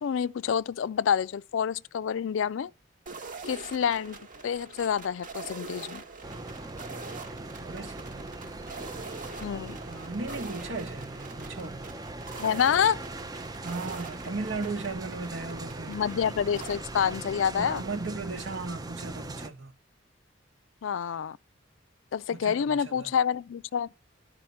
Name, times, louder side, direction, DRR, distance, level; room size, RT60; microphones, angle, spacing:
voice 1, 0.0-2.7 3.5-4.2 4.4-6.0 9.4-9.8 12.4-13.0 15.9-17.8 20.8-21.4 22.1-23.9, left 7 dB, 70° left, 0.4 m, -27 dB
sound 1, 3.1-16.8, right 4 dB, 40° right, 1.2 m, -44 dB
sound 2, 6.2-19.5, right 2 dB, 20° right, 0.5 m, -40 dB
voice 2, 7.6-8.3 9.8-12.0 13.6-16.0 17.6-19.7 22.3-23.1, right 3 dB, 65° right, 1.4 m, -36 dB
12.0 x 5.0 x 5.7 m
head